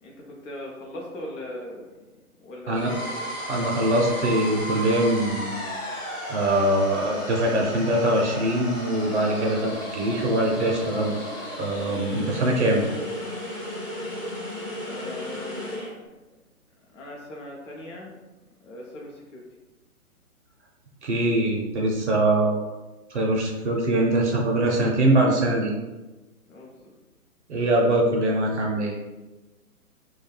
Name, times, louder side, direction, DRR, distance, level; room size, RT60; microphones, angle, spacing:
voice 1, 0.0-2.0 2.4-3.3 14.8-16.2 16.9-18.1 18.6-19.4 26.5-26.9, left 1 dB, 55° left, -2 dB, 0.7 m, -40 dB
sound 1, 2.7-15.9, equal, 15° left, 0.5 m, -34 dB
voice 2, 3.5-5.6 6.3-11.1 11.6-12.8 21.0-22.6 23.1-25.7 27.5-28.9, right 1 dB, 50° right, -1 dB, 0.5 m, -23 dB
2.3 x 2.2 x 3.1 m, 1.1 s
figure-of-eight pair, 130°, 44 cm